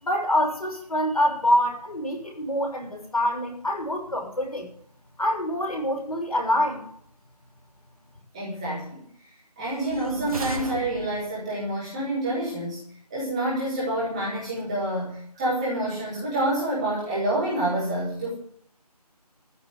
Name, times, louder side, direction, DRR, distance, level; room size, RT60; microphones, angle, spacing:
voice 1, 0.0-4.7 5.2-6.8, left 1 dB, 60° left, 1 dB, 6.7 m, -25 dB
voice 2, 8.3-9.0 9.6-12.8 13.1-18.3, right 1 dB, 10° right, -9 dB, 3.3 m, -27 dB
sound 1, 9.7-11.5, right 1 dB, 60° right, 2.3 m, -36 dB
15.0 x 7.1 x 9.3 m, 0.63 s
figure-of-eight pair, 170°, 21 cm